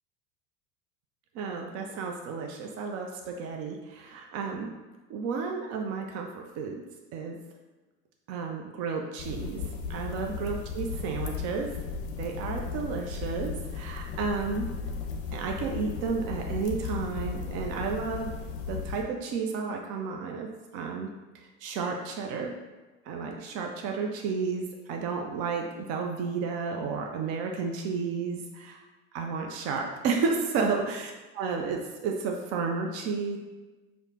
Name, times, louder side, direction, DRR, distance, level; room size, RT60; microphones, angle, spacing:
voice 1, 1.3-4.7 5.1-6.8 7.1-7.4 8.3-11.7 12.2-14.7 15.3-18.4 18.7-20.5 20.7-21.1 21.6-22.5 23.1-28.8 29.1-33.4, right 5 dB, 40° right, 2 dB, 0.4 m, -32 dB
sound 1, 9.2-19.0, left 5 dB, 45° left, 0.6 m, -36 dB
4.8 x 2.1 x 2.7 m, 1.2 s
hypercardioid pair, 85°, 40 cm